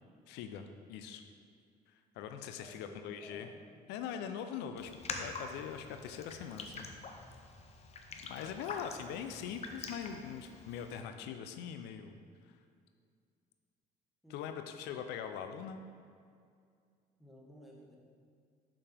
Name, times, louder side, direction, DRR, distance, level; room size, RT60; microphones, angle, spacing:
voice 1, 0.3-1.2 1.9-3.5 3.9-6.9 8.1-12.2 12.5-12.6 14.3-15.8, left 8 dB, 90° left, 7 dB, 0.5 m, -42 dB
voice 2, 2.6-3.6 9.0-9.2 14.2-14.6 17.2-18.0, equal, ahead, -4 dB, 1.3 m, -55 dB
Raindrop, 4.8-11.0, left 4 dB, 40° left, 0.7 m, -46 dB
6.8 x 5.4 x 3.4 m, 2.2 s
cardioid pair, 110°, 17 cm